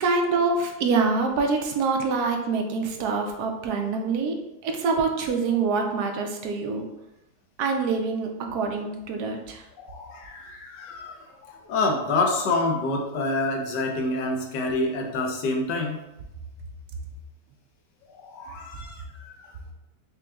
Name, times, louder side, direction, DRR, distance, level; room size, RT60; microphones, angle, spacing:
voice 1, 0.0-4.4 4.6-6.8 7.6-9.6, right 4 dB, 70° right, 3 dB, 1.1 m, -25 dB
voice 2, 9.8-11.1 11.4-16.0 18.2-19.4, left 2 dB, 85° left, 2 dB, 1.3 m, -27 dB
4.9 x 3.0 x 2.3 m, 0.92 s
omnidirectional pair, 1.8 m